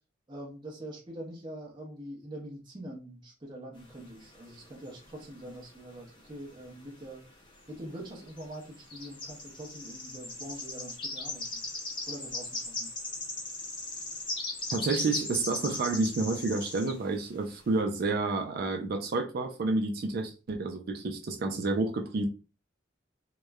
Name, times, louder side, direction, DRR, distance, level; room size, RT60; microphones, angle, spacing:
voice 1, 0.3-7.2 7.7-11.6 12.1-12.9, right 1 dB, 25° right, 0.7 m, -44 dB
sound 1, 3.8-5.5 5.7-7.0 7.3-7.5 8.1-17.0, left 2 dB, 25° left, 0.6 m, -38 dB
voice 2, 14.7-22.3, right 3 dB, 50° right, 0.4 m, -30 dB
2.9 x 2.1 x 2.2 m
head